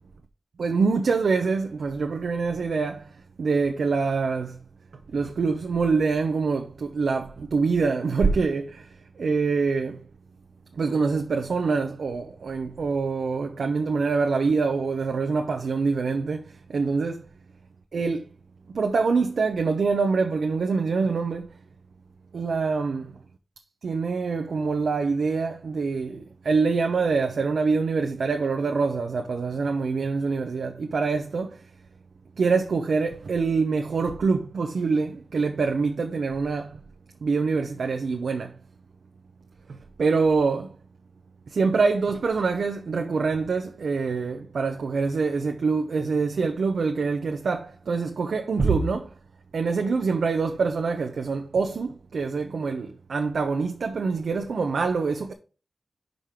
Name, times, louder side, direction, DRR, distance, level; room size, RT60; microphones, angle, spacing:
voice 1, 0.6-3.1 3.4-4.6 5.1-10.0 10.7-17.2 17.9-18.3 18.7-21.5 22.3-23.1 23.8-31.6 32.4-36.8 37.2-38.5 40.0-40.8 41.5-49.1 49.5-55.3, right 4 dB, 80° right, 0.7 m, -25 dB
5.2 x 5.0 x 5.8 m
wide cardioid pair, 120°, 0 cm